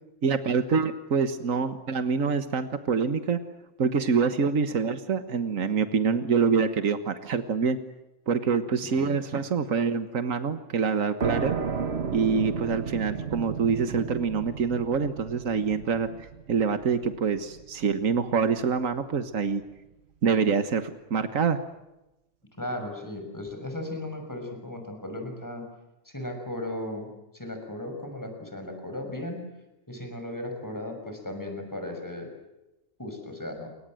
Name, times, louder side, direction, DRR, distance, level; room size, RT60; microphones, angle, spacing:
voice 1, 0.2-3.4 3.8-7.8 8.3-11.5 12.1-16.1 16.5-19.6 20.2-20.8 21.1-21.6, right 5 dB, 85° right, 10 dB, 1.8 m, -25 dB
sound 1, 11.2-18.6, right 6 dB, 55° right, 1.6 m, -33 dB
voice 2, 22.6-25.7 26.0-29.4 29.9-32.3 33.0-33.7, left 1 dB, 15° left, 4 dB, 6.3 m, -36 dB
28.5 x 24.5 x 7.8 m, 0.96 s
omnidirectional pair, 1.3 m